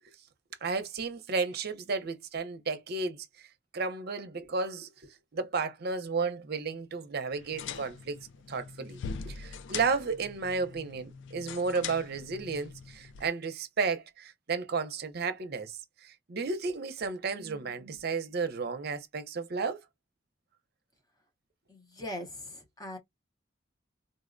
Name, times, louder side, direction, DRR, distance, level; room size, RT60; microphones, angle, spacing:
voice 1, 0.6-3.5 3.7-4.9 5.3-8.2 8.5-9.0 9.2-19.8, right 4 dB, 55° right, 0.6 m, -33 dB
sound 1, 7.3-13.3, left 6 dB, 65° left, 0.3 m, -42 dB
voice 2, 21.7-23.0, left 1 dB, 20° left, 0.6 m, -41 dB
3.8 x 2.0 x 2.5 m
head